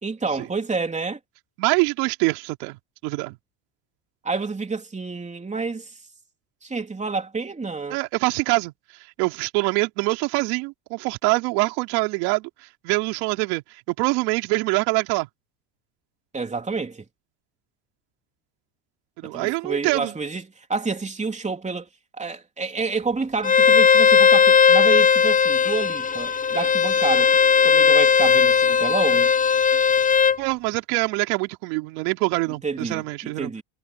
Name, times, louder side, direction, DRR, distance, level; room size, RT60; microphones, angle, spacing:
voice 1, 0.0-1.2 4.2-5.9 6.6-8.0 16.3-17.0 19.2-21.9 22.2-27.4 27.6-29.3 32.6-33.0 33.4-33.6, right 4 dB, 15° right, 3.3 m, -28 dB
voice 2, 1.6-2.8 3.0-3.4 7.9-8.7 9.2-15.3 19.2-20.1 30.4-33.5, right 27 dB, 80° right, 3.5 m, -24 dB
Bowed string instrument, 23.4-30.4, left 7 dB, 15° left, 0.9 m, -17 dB
supercardioid pair, 115°, 49 cm